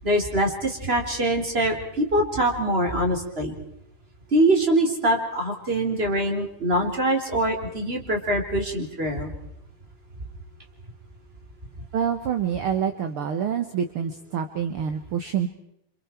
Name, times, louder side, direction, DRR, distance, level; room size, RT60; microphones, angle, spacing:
voice 1, 0.0-3.5 4.3-9.3, right 1 dB, 15° right, 3 dB, 3.6 m, -23 dB
voice 2, 11.9-15.5, right 8 dB, 55° right, 7 dB, 1.6 m, -27 dB
29.0 x 27.0 x 4.5 m, 0.78 s
omnidirectional pair, 3.8 m